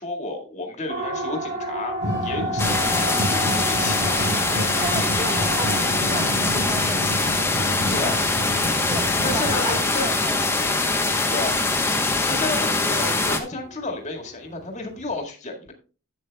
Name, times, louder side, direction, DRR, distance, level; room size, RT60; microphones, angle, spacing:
voice 1, 0.0-2.0 2.2-4.3 4.5-4.8 7.9-8.2 9.2-10.1 11.3-11.6 12.3-15.7, left 2 dB, 30° left, 1.9 m, -32 dB
Siren, 0.9-15.2, right 1 dB, 35° right, 3.6 m, -34 dB
sound 1, 2.0-9.9, equal, 55° right, 4.1 m, -30 dB
sound 2, 2.6-13.4, left 3 dB, 10° left, 0.9 m, -23 dB
voice 2, 4.7-7.1 8.8-11.2, right 1 dB, 20° right, 1.2 m, -34 dB
12.0 x 8.6 x 2.2 m
head